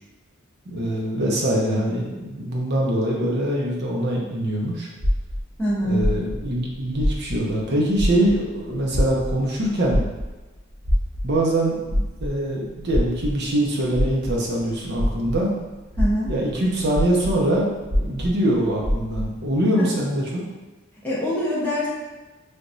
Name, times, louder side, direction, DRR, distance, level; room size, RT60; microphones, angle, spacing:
voice 1, 0.7-4.9 5.8-10.0 11.2-15.5 16.3-17.7 18.0-20.4, right 1 dB, 55° right, -2 dB, 0.7 m, -23 dB
sound 1, 5.0-7.6 7.9-15.5 15.9-19.4, equal, 85° right, 0.9 m, -25 dB
voice 2, 5.6-6.0 16.0-16.3 19.8-19.9 21.0-21.9, equal, 10° left, -8 dB, 1.0 m, -24 dB
3.4 x 3.0 x 2.6 m, 1.2 s
head